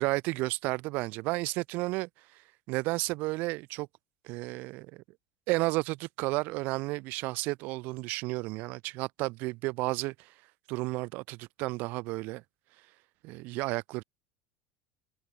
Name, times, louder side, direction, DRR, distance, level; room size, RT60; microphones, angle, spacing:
voice 1, 0.0-2.1 2.7-3.9 4.2-5.0 5.5-10.3 10.7-12.4 13.2-14.0, right 23 dB, 50° right, 7.7 m, -32 dB
cardioid pair, 165°, 4 cm